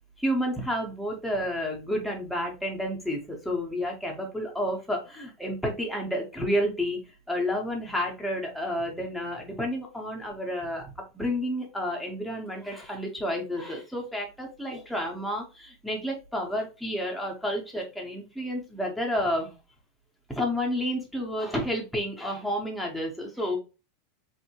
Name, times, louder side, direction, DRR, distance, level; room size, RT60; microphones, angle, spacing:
voice 1, 0.2-7.0 7.3-10.8 11.1-19.5 20.3-23.6, equal, ahead, -1 dB, 0.7 m, -30 dB
3.6 x 2.6 x 2.7 m, 0.29 s
supercardioid pair, 170°, 0 cm